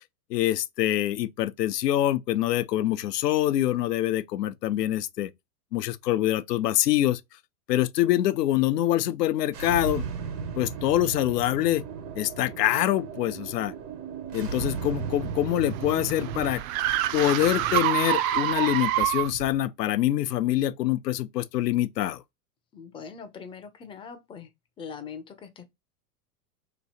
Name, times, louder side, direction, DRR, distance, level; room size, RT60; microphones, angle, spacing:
voice 1, 0.3-5.3 5.7-7.2 7.7-10.0 10.6-11.8 12.1-13.7 14.3-16.6 17.1-22.2, left 13 dB, 90° left, 0.6 m, -25 dB
sound 1, 9.5-16.6, right 6 dB, 90° right, 1.3 m, -35 dB
sound 2, 15.0-19.5, right 13 dB, 60° right, 0.6 m, -27 dB
voice 2, 22.7-24.5 24.8-25.7, left 6 dB, 10° left, 0.4 m, -42 dB
3.0 x 2.7 x 4.1 m
hypercardioid pair, 120°, 47 cm